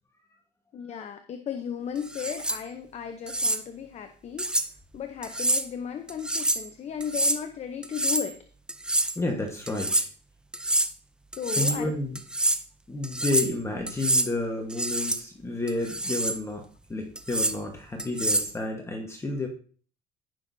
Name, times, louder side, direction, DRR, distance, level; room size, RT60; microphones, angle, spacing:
voice 1, 0.7-4.7 4.9-8.4 11.4-11.9, left 8 dB, 35° left, 7 dB, 0.8 m, -35 dB
sound 1, 2.1-2.6 3.3-3.6 4.4-4.7 5.2-5.7 6.1-6.7 7.0-7.4 7.8-8.3 8.7-9.2 9.7-10.1 10.5-10.9 11.3-11.8 12.1-12.6 13.0-13.5 13.9-14.3 14.7-15.2 15.7-16.4 17.2-17.6 18.0-18.5, right 1 dB, 5° right, 0.5 m, -26 dB
voice 2, 9.1-10.0 11.6-12.2 12.9-19.5, left 2 dB, 15° left, 1 dB, 1.3 m, -31 dB
15.5 x 6.1 x 2.7 m, 0.43 s
cardioid pair, 130°, 18 cm